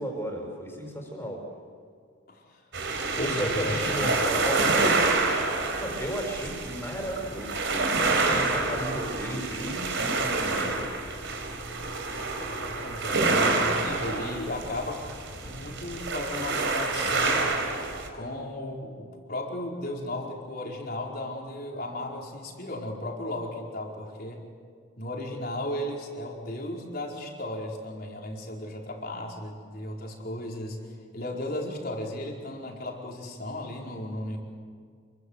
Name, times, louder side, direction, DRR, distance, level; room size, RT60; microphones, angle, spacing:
voice 1, 0.0-1.4 3.1-4.9 5.8-10.8, equal, 10° left, 1 dB, 6.0 m, -34 dB
voice 2, 2.3-2.6 3.1-4.1 12.5-15.0 15.4-17.5 18.1-24.4 25.0-30.8 31.1-34.4, left 1 dB, 45° left, 0 dB, 4.7 m, -35 dB
sound 1, 2.7-18.1, right 3 dB, 60° right, 4.1 m, -27 dB
29.0 x 22.5 x 8.2 m, 2.1 s
head